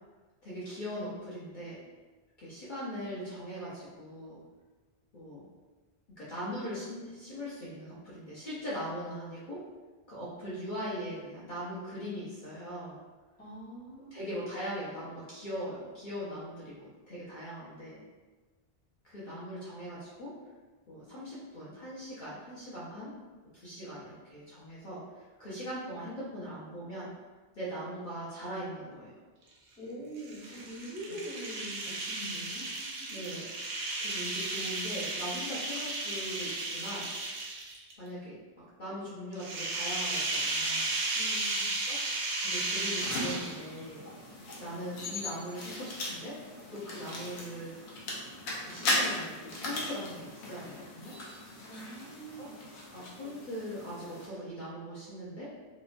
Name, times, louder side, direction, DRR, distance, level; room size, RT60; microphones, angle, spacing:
voice 1, 0.4-1.8 2.4-4.4 5.1-5.5 6.2-9.6 10.1-13.0 14.1-18.0 19.0-20.3 20.9-23.1 23.5-27.1 27.5-29.1 33.1-33.5 34.0-37.1 38.0-40.9 41.9-42.0 42.4-44.1 44.6-46.4 46.7-47.8 48.6-51.1 52.3-52.5 52.9-55.5, equal, 55° left, -9 dB, 0.7 m, -40 dB
voice 2, 13.4-14.3 29.8-33.2 41.1-41.7 51.6-52.6, right 1 dB, 10° left, -8 dB, 0.7 m, -44 dB
sound 1, 30.2-37.9 39.3-43.8, right 2 dB, 70° right, 0.8 m, -34 dB
sound 2, 43.0-54.3, left 1 dB, 85° left, 0.9 m, -38 dB
2.9 x 2.1 x 2.4 m, 1.3 s
omnidirectional pair, 1.1 m